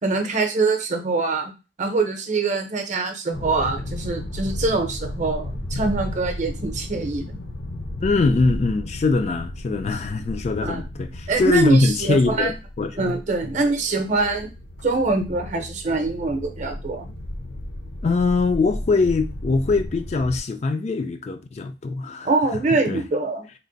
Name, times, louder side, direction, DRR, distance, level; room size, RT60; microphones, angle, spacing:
voice 1, 0.0-1.5 1.8-7.4 10.6-10.8 11.3-12.5 13.0-14.5 14.8-17.1 22.2-23.5, right 3 dB, 40° right, 0.6 m, -24 dB
sound 1, 3.3-20.4, left 1 dB, 70° left, 0.7 m, -34 dB
voice 2, 8.0-13.2 13.5-13.6 18.0-22.3 22.9-23.0, left 3 dB, 35° left, 0.3 m, -22 dB
3.3 x 2.0 x 3.9 m
head